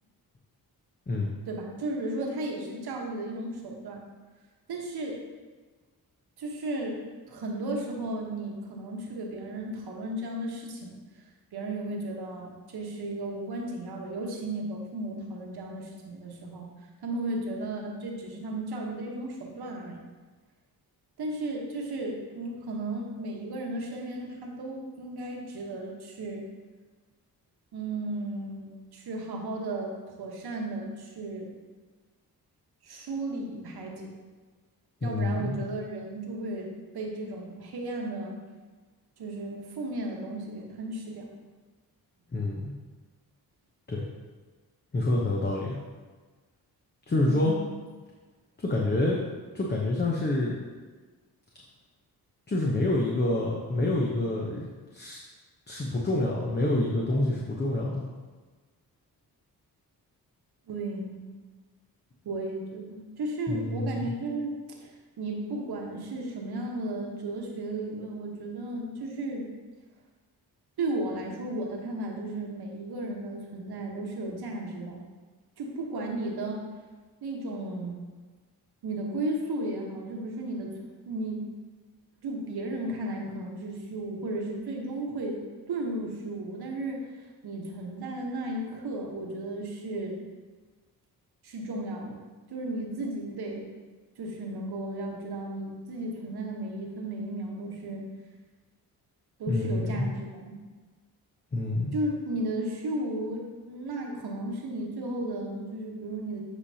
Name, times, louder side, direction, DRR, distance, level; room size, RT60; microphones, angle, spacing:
voice 1, 1.5-4.0 4.7-5.2 6.4-11.0 11.5-16.7 17.0-20.0 21.2-26.5 27.7-31.5 32.8-34.1 35.0-38.4 39.2-41.3 47.2-47.7 60.7-61.3 62.2-69.5 70.8-75.0 75.6-76.6 77.2-78.0 78.8-80.8 81.1-81.5 82.2-85.4 85.7-87.1 87.4-90.2 91.4-92.2 92.5-93.7 94.2-98.0 99.4-100.6 101.9-106.4, right 1 dB, 75° right, 0 dB, 1.3 m, -34 dB
voice 2, 35.0-35.6 42.3-42.7 43.9-44.1 44.9-45.8 47.1-47.6 48.6-49.2 49.5-50.6 52.5-54.7 54.9-55.2 55.7-58.0 63.5-64.1 99.5-100.1 101.5-101.9, left 2 dB, 25° left, -2 dB, 0.9 m, -27 dB
8.3 x 5.0 x 2.8 m, 1.4 s
cardioid pair, 80°, 39 cm